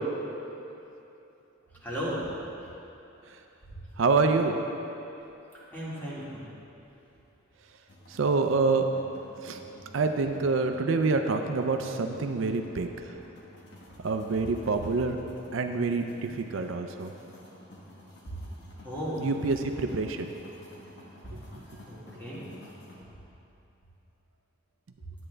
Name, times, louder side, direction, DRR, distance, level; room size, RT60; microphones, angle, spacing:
voice 1, 1.8-2.2 5.7-6.4 18.8-19.3 21.2-21.3 21.9-22.5, equal, 10° left, -8 dB, 2.1 m, -35 dB
voice 2, 4.0-4.6 8.1-8.9 9.4-9.6 9.9-13.1 14.0-15.2 15.5-17.1 19.2-20.3 21.3-21.4, right 4 dB, 70° right, 5 dB, 0.5 m, -27 dB
sound 1, 7.9-23.0, left 1 dB, 60° left, 1.3 m, -51 dB
10.5 x 8.7 x 3.3 m, 2.9 s
head